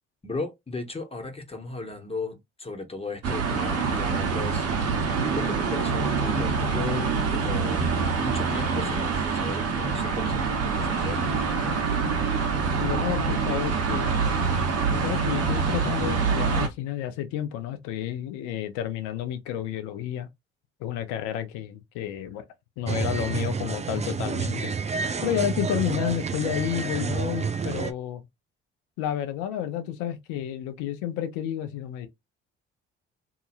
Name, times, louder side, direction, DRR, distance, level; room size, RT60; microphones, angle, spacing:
voice 1, 0.2-4.7 5.1-7.8 8.2-12.0, left 3 dB, 20° left, 1.2 m, -36 dB
sound 1, 3.2-16.7, right 5 dB, 55° right, 1.1 m, -25 dB
voice 2, 12.8-14.6 14.9-20.3 20.8-22.4 22.8-24.7 25.2-28.2 29.0-32.1, left 10 dB, 80° left, 0.7 m, -31 dB
sound 2, 22.9-27.9, right 5 dB, 25° right, 0.5 m, -29 dB
2.8 x 2.7 x 2.5 m
hypercardioid pair, 50°, 29 cm